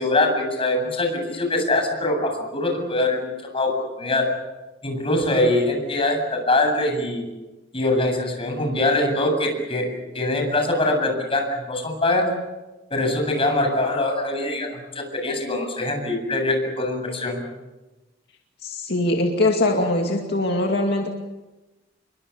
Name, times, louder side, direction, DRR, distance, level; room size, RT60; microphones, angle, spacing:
voice 1, 0.0-4.3 4.8-7.3 7.7-12.3 12.9-17.4, left 2 dB, 30° left, 3 dB, 8.0 m, -23 dB
voice 2, 18.6-21.1, left 2 dB, 60° left, 2 dB, 2.4 m, -22 dB
29.0 x 23.0 x 7.3 m, 1.1 s
head